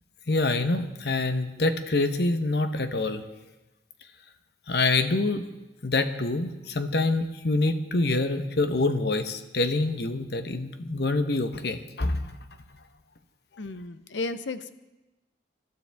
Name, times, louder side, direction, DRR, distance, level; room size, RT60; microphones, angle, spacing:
voice 1, 0.3-3.2 4.7-5.4 5.8-12.4, left 2 dB, 60° left, 8 dB, 1.0 m, -26 dB
voice 2, 13.6-14.7, left 3 dB, 90° left, 12 dB, 0.7 m, -33 dB
25.5 x 12.5 x 3.5 m, 1.1 s
head